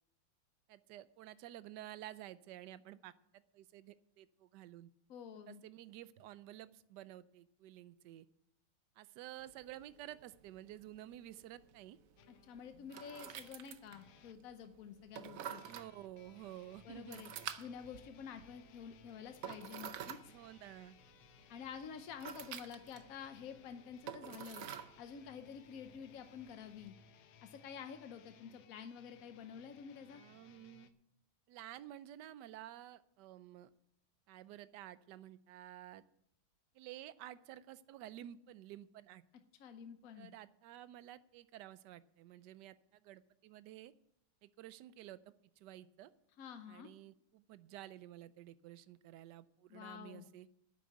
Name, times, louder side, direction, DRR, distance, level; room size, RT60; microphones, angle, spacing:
voice 1, 0.7-4.9 5.5-8.3 9.0-12.0 15.6-17.2 20.3-21.0 30.1-30.9 31.5-33.7 34.3-36.0 36.7-39.2 40.2-43.9 44.4-45.2 45.6-46.1 46.7-50.5, right 13 dB, 75° right, 16 dB, 1.0 m, -52 dB
voice 2, 5.1-5.6 12.3-15.6 16.8-17.3 17.6-20.3 21.5-24.6 25.0-26.9 27.4-30.2 39.6-40.3 46.4-46.9 49.7-50.3, left 7 dB, 60° left, 8 dB, 0.9 m, -49 dB
sound 1, 9.4-26.9, right 9 dB, 90° right, 0.7 m, -51 dB
sound 2, 12.2-14.4 15.4-30.9, left 7 dB, 85° left, 1.7 m, -64 dB
9.6 x 7.5 x 9.2 m, 0.75 s
omnidirectional pair, 2.3 m